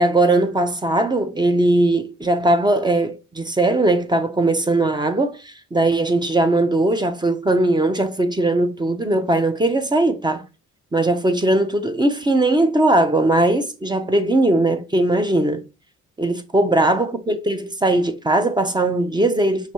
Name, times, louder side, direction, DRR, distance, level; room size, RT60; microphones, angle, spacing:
voice 1, 0.0-10.4 10.9-15.6 16.2-19.7, right 2 dB, 15° right, 0.6 m, -19 dB
5.8 x 2.6 x 2.9 m
cardioid pair, 90°, 30 cm